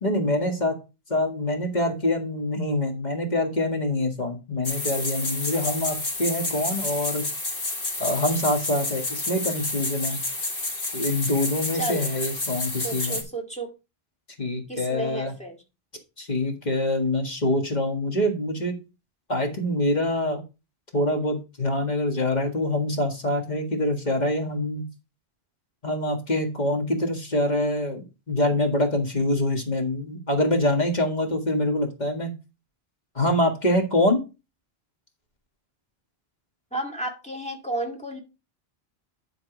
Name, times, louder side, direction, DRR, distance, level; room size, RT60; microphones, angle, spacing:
voice 1, 0.0-0.8 1.1-7.2 8.0-10.2 10.9-13.2 14.4-15.3 16.2-18.8 19.3-20.4 20.9-24.9 25.8-32.3 33.2-34.2, left 1 dB, 45° left, 1.9 m, -25 dB
sound 1, 4.6-13.2, left 2 dB, 60° left, 2.2 m, -30 dB
voice 2, 11.7-12.2 12.8-13.7 14.7-15.6 36.7-38.2, right 2 dB, 5° left, 2.2 m, -32 dB
11.0 x 4.0 x 5.0 m
omnidirectional pair, 1.0 m